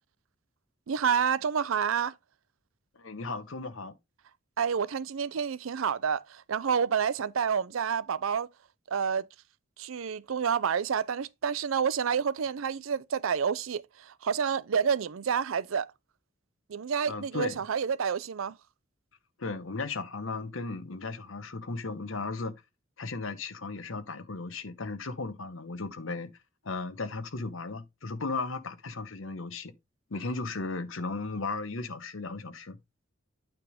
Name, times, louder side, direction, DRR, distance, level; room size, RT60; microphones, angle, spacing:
voice 1, 0.9-2.1 4.6-8.5 8.9-9.3 9.8-15.9 16.7-18.6, right 7 dB, 90° right, 0.5 m, -29 dB
voice 2, 2.9-3.9 17.1-17.6 19.4-22.5 23.0-26.3 26.6-29.7 30.1-32.8, left 3 dB, 80° left, 1.0 m, -36 dB
9.1 x 3.6 x 5.1 m
head